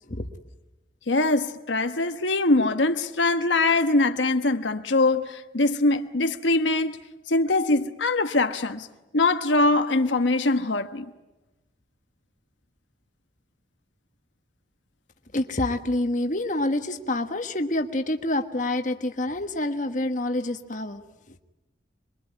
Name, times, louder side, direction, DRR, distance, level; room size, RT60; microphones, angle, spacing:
voice 1, 1.1-7.0 7.3-8.9 9.1-11.1, left 2 dB, 90° left, 1.3 m, -22 dB
voice 2, 15.3-21.0 21.3-21.4, left 1 dB, 45° left, 1.4 m, -27 dB
26.5 x 22.5 x 9.9 m
head